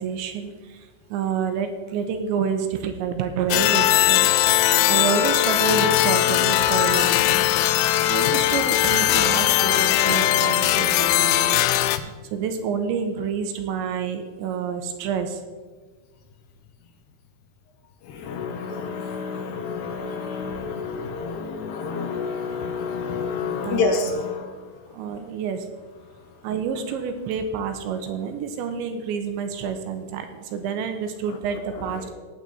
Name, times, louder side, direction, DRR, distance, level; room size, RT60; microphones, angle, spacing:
voice 1, 0.0-7.4 8.1-11.7 12.0-15.4 23.6-24.0 24.9-25.7 26.4-32.1, right 7 dB, 80° right, 7 dB, 3.2 m, -28 dB
sound 1, 3.5-12.0, left 14 dB, 90° left, 3.1 m, -19 dB
voice 2, 18.0-24.5 31.9-32.1, left 4 dB, 75° left, 5 dB, 2.8 m, -29 dB
18.5 x 8.0 x 4.2 m, 1.4 s
omnidirectional pair, 5.3 m